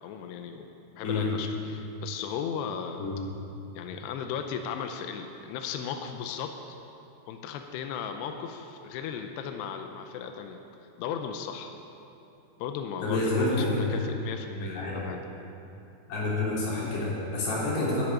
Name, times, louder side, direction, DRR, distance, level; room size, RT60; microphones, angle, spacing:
voice 1, 0.0-0.7 1.0-3.0 3.7-6.6 7.3-10.6 11.0-11.7 12.6-15.2, left 7 dB, 85° left, 5 dB, 2.5 m, -36 dB
voice 2, 13.0-13.8 14.6-15.0 16.1-18.0, left 2 dB, 60° left, -6 dB, 5.3 m, -28 dB
13.0 x 6.9 x 9.9 m, 2.8 s
omnidirectional pair, 5.5 m